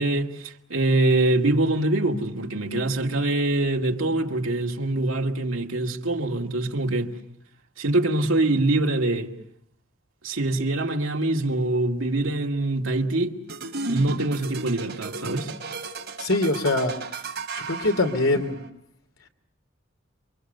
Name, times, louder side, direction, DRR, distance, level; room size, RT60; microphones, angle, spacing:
voice 1, 0.0-7.1 7.8-9.3 10.2-13.4 13.9-15.5, right 2 dB, 80° right, 2.2 m, -24 dB
sound 1, 13.5-18.7, right 3 dB, 55° right, 3.8 m, -34 dB
voice 2, 16.2-16.9 17.7-18.6, left 2 dB, 85° left, 2.8 m, -23 dB
28.5 x 24.0 x 6.8 m
head